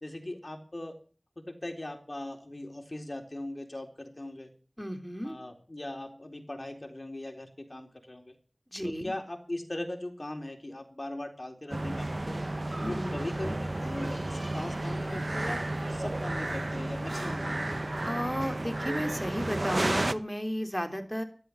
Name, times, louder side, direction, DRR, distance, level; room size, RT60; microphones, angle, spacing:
voice 1, 0.0-0.9 1.5-4.5 5.2-8.3 8.8-12.4 12.8-15.6 15.9-17.7, left 1 dB, 45° left, 3 dB, 3.8 m, -39 dB
voice 2, 4.8-5.4 8.7-9.1 12.8-13.2 18.0-21.2, equal, 5° left, 5 dB, 3.3 m, -33 dB
sound 1, 11.7-20.1, right 1 dB, 50° right, 0.9 m, -32 dB
13.5 x 12.0 x 8.5 m, 0.41 s
wide cardioid pair, 45°, 0 cm